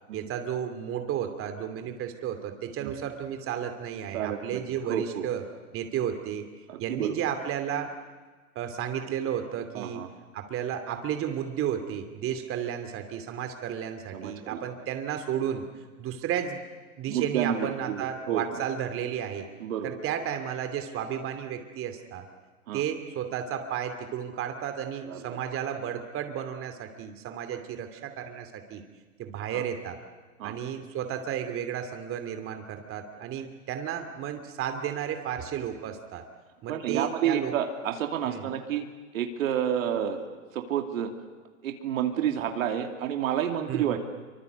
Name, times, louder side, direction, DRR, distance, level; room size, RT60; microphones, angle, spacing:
voice 1, 0.1-5.4 5.7-6.5 6.8-7.9 8.5-10.0 10.3-15.6 16.0-16.6 17.0-19.5 19.8-22.3 22.7-28.8 29.2-30.0 30.4-36.2 36.6-37.5 38.3-38.5 43.7-44.0, right 9 dB, 30° right, 7 dB, 2.8 m, -33 dB
voice 2, 4.1-5.3 6.7-7.2 9.7-10.1 14.1-14.7 17.1-18.4 19.6-20.0 22.7-22.8 25.1-25.2 29.5-29.7 30.4-30.6 36.7-38.9 39.1-41.1 41.6-44.0, right 9 dB, 65° right, 5 dB, 2.8 m, -30 dB
25.5 x 24.5 x 8.2 m, 1.4 s
hypercardioid pair, 120°, 42 cm